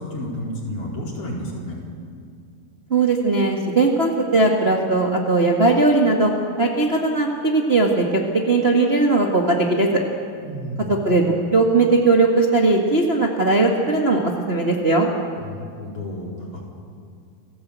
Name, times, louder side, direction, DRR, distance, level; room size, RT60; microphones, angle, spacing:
voice 1, 0.0-1.8 10.4-11.0 15.4-16.6, equal, 35° left, -3 dB, 5.2 m, -31 dB
voice 2, 2.9-6.3 6.6-8.2 8.5-9.9 10.9-15.1, right 3 dB, 45° right, -1 dB, 0.8 m, -18 dB
28.5 x 15.5 x 8.2 m, 2.3 s
omnidirectional pair, 4.3 m